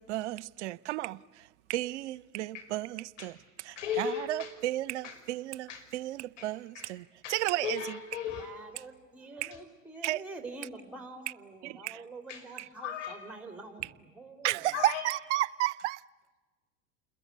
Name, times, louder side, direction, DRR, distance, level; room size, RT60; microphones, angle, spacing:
voice 1, 0.0-3.3 4.0-7.0 7.3-7.8 9.4-9.5 10.0-10.2 11.6-12.0 14.4-16.0, right 16 dB, 60° right, 0.8 m, -33 dB
voice 2, 3.8-4.6 5.0-5.3 5.7-5.9 6.4-7.0 7.2-8.6 9.5-9.6 12.3-13.3 14.7-15.1, left 8 dB, 70° left, 6.0 m, -38 dB
voice 3, 8.4-14.6, right 3 dB, 5° right, 3.3 m, -46 dB
29.0 x 21.5 x 8.3 m
hypercardioid pair, 85°, 39 cm